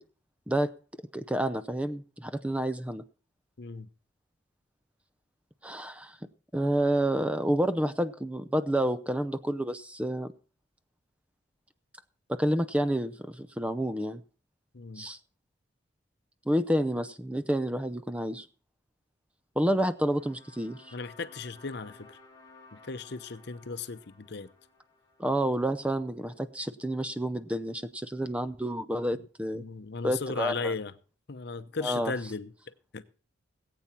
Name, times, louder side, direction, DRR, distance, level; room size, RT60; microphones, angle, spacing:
voice 1, 1.1-3.0 5.6-6.2 6.5-10.3 12.3-14.2 15.0-15.2 16.5-18.5 19.6-20.9 25.2-29.6 30.0-30.7 31.8-32.1, right 1 dB, 5° right, 0.6 m, -29 dB
voice 2, 3.6-3.9 14.7-15.1 20.9-22.2 22.7-24.5 29.5-30.9 31.3-33.1, left 4 dB, 60° left, 0.8 m, -36 dB
sound 1, 20.0-26.2, left 3 dB, 20° left, 2.1 m, -56 dB
18.5 x 8.6 x 4.4 m
head